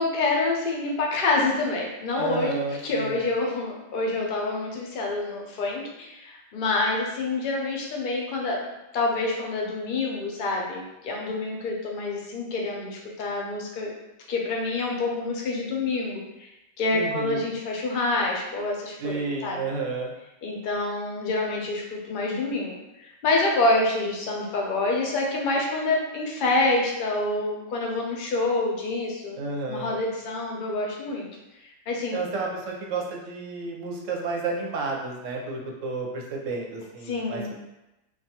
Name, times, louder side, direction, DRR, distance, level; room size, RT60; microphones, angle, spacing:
voice 1, 0.0-2.5 2.8-8.6 8.9-13.9 14.3-16.5 16.8-19.6 20.4-22.7 23.0-29.4 29.7-31.3 31.9-32.3 37.1-37.5, left 2 dB, 65° left, -2 dB, 0.5 m, -27 dB
voice 2, 2.1-3.2 16.9-17.5 19.0-20.1 29.4-29.9 32.1-37.5, right 3 dB, 70° right, -2 dB, 0.9 m, -31 dB
2.3 x 2.3 x 2.8 m, 0.95 s
omnidirectional pair, 1.4 m